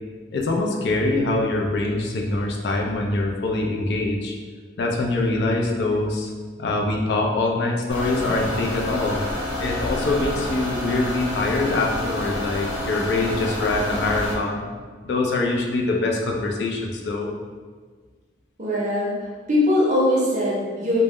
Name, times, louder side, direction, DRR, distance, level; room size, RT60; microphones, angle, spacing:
voice 1, 0.3-4.3 4.8-6.3 6.6-9.2 9.6-14.6 15.0-17.3, left 2 dB, 65° left, 0 dB, 0.4 m, -24 dB
sound 1, 7.9-14.3, left 1 dB, 85° left, 0.8 m, -28 dB
voice 2, 18.6-19.1 19.5-21.0, left 1 dB, 40° right, -6 dB, 0.6 m, -21 dB
2.1 x 2.0 x 3.4 m, 1.5 s
head